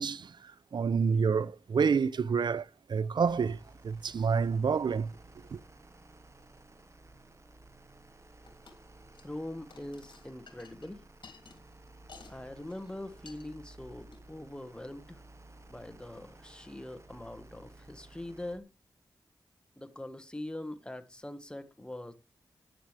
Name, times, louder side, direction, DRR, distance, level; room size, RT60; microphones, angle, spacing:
voice 1, 0.0-5.1 5.5-5.6, right 6 dB, 65° right, 0.5 m, -29 dB
sound 1, 3.2-18.6, right 2 dB, 35° right, 1.4 m, -55 dB
sound 2, 8.5-8.8 9.1-9.4 9.7-12.4 12.6-12.9 13.2-13.4 14.0-14.2, left 4 dB, 70° left, 2.9 m, -54 dB
voice 2, 9.2-11.0 12.3-15.2 15.7-18.7 19.8-22.1, left 1 dB, 10° left, 1.6 m, -42 dB
14.0 x 9.2 x 3.4 m
cardioid pair, 70°, 8 cm